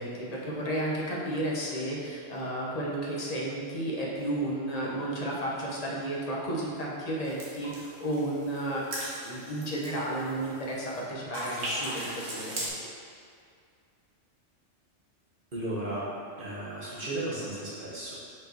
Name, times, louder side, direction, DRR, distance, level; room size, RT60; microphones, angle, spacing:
voice 1, 0.0-8.8 9.2-12.6, right 1 dB, 35° left, -4 dB, 1.2 m, -32 dB
sound 1, 7.3-11.0 11.3-12.7, right 1 dB, 85° right, 1.7 m, -38 dB
voice 2, 15.5-16.1 16.4-18.1, right 1 dB, 45° right, -9 dB, 2.1 m, -34 dB
6.0 x 5.2 x 4.5 m, 2.3 s
omnidirectional pair, 1.3 m